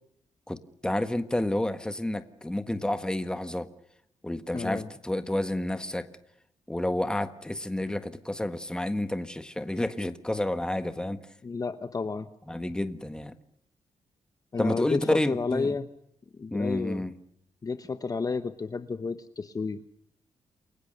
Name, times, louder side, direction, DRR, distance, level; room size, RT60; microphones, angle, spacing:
voice 1, 0.5-3.7 4.2-6.1 6.7-11.2 12.5-13.4 14.6-15.8 16.5-17.1, left 1 dB, 5° left, 1.5 m, -30 dB
voice 2, 4.5-4.9 11.4-12.3 14.5-15.9 16.3-17.0 17.6-19.8, left 4 dB, 30° left, 1.1 m, -31 dB
29.0 x 22.5 x 6.7 m
wide cardioid pair, 145°, 13 cm